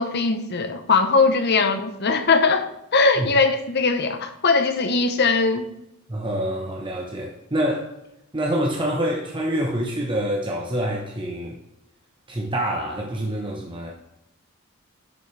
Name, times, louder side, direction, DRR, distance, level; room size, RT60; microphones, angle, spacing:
voice 1, 0.0-5.7, left 4 dB, 50° left, 8 dB, 0.9 m, -20 dB
voice 2, 6.1-7.9 8.3-11.6 12.3-13.9, right 1 dB, 25° right, -1 dB, 1.1 m, -26 dB
11.0 x 6.3 x 3.3 m, 0.86 s
head